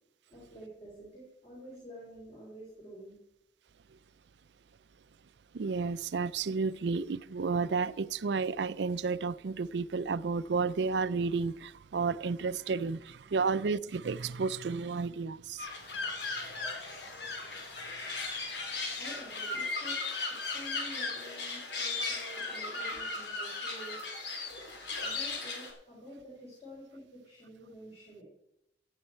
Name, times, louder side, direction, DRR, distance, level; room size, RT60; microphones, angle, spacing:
voice 1, 0.3-3.2 19.0-20.1 20.5-24.0 25.0-28.2, equal, 35° left, 4.0 m, -49 dB
voice 2, 5.5-15.7, right 4 dB, 75° right, 0.5 m, -32 dB
sound 1, 15.6-25.7, left 3 dB, 75° left, 2.9 m, -37 dB
15.0 x 9.0 x 4.4 m
head